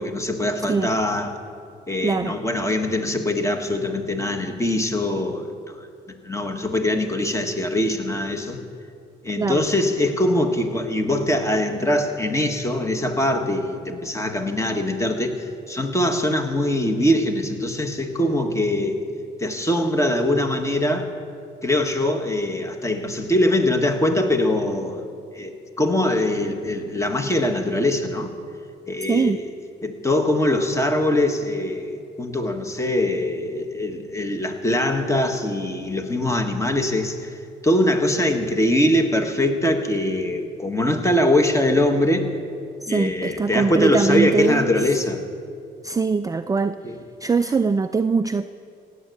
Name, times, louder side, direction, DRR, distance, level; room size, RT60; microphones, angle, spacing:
voice 1, 0.0-1.4 1.9-5.5 6.1-8.6 9.2-19.0 19.4-21.1 21.6-25.1 25.3-28.3 28.9-29.4 29.8-37.3 37.6-42.3 42.9-45.2 46.8-47.0, left 1 dB, 15° left, 5 dB, 1.6 m, -22 dB
voice 2, 2.0-2.3 9.4-9.6 29.1-29.4 42.8-44.6 45.8-46.8 47.2-48.4, right 4 dB, 15° right, 10 dB, 0.4 m, -22 dB
17.0 x 8.2 x 8.5 m, 2.3 s
cardioid pair, 90°, 20 cm